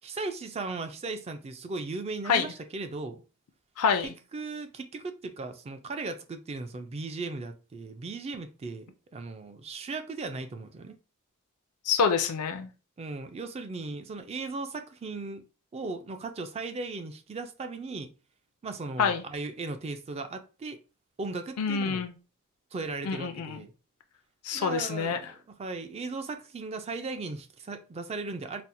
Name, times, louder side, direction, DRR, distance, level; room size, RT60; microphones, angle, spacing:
voice 1, 0.0-3.2 4.3-11.0 13.0-15.4 15.7-18.1 18.6-20.8 21.2-22.1 22.7-23.7 24.5-28.6, right 3 dB, 30° right, 0.3 m, -37 dB
voice 2, 3.8-4.1 11.9-12.7 19.0-19.2 21.6-22.1 23.0-23.6 24.4-25.2, left 6 dB, 85° left, 0.4 m, -26 dB
4.1 x 2.0 x 2.6 m
head